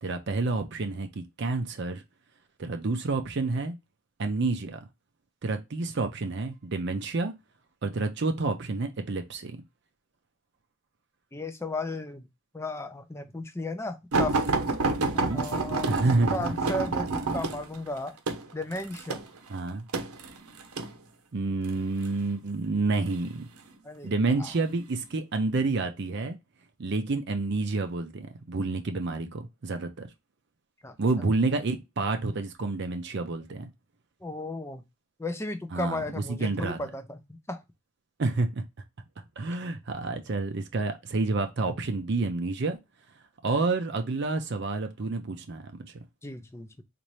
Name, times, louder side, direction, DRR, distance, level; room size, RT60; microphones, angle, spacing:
voice 1, 0.0-2.0 2.6-3.7 4.2-4.8 5.4-7.3 7.8-9.6 15.0-15.4 15.9-16.5 19.5-19.8 21.3-23.5 24.0-26.4 26.8-30.1 31.0-33.7 35.7-36.0 36.3-36.8 38.2-38.6 39.4-42.8 43.4-46.0, right 3 dB, 50° right, 0.5 m, -29 dB
voice 2, 11.3-12.3 12.5-14.5 15.1-16.0 16.3-18.2 18.5-19.2 23.8-24.1 24.4-24.5 30.8-31.0 34.2-34.8 35.2-37.6 46.2-46.8, left 2 dB, 10° left, 0.4 m, -35 dB
sound 1, 14.1-20.9 21.7-22.1 23.1-23.7 24.4-24.6 25.0-25.1, right 3 dB, 90° right, 0.8 m, -28 dB
4.1 x 2.5 x 3.1 m
head